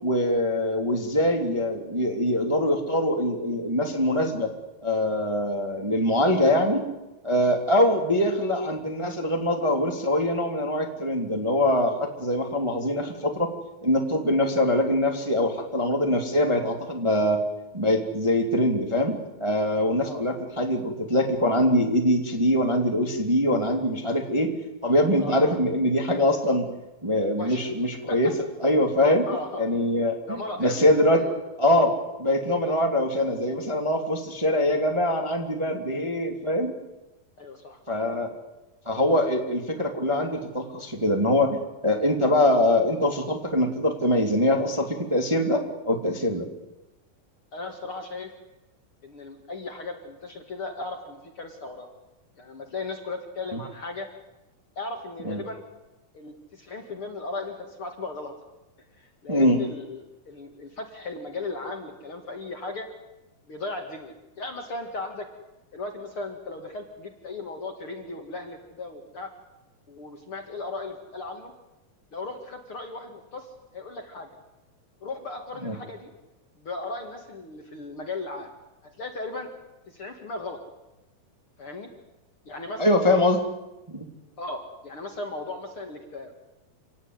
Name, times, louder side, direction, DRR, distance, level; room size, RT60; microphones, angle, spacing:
voice 1, 0.0-4.5 4.8-6.8 7.2-13.5 13.8-17.4 17.7-24.5 24.8-26.7 27.0-28.3 28.6-29.3 29.6-30.1 30.6-31.2 31.6-31.9 32.2-36.7 37.9-38.3 38.9-41.6 41.8-46.5 53.5-53.6 55.2-55.4 59.3-59.6 75.6-75.7 82.8-83.4 83.9-84.0, left 1 dB, 10° right, 3 dB, 2.2 m, -23 dB
voice 2, 25.2-25.5 27.4-27.7 28.1-28.3 29.3-29.6 30.3-31.4 37.4-37.8 47.5-48.3 49.0-51.9 52.4-54.1 54.8-55.6 56.1-58.3 59.0-62.9 63.5-65.3 65.7-69.3 69.9-71.5 72.1-74.3 75.0-76.1 76.6-78.5 78.8-79.5 79.9-80.6 81.6-81.9 82.5-83.0 84.4-86.3, left 3 dB, 40° left, 4 dB, 2.5 m, -36 dB
28.0 x 17.5 x 9.8 m, 1.0 s
omnidirectional pair, 4.2 m